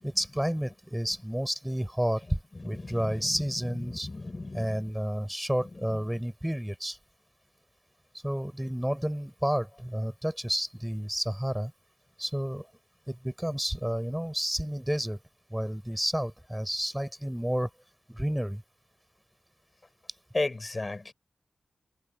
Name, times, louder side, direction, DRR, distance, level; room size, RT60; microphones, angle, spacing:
voice 1, 0.0-4.1 4.5-7.0 8.2-11.7 12.2-12.7 13.1-15.2 15.5-17.7 18.1-18.6, equal, 5° right, 5.3 m, -31 dB
voice 2, 2.6-4.8 5.7-5.9 20.3-21.1, left 2 dB, 30° left, 5.4 m, -35 dB
wide cardioid pair, 140°, 0 cm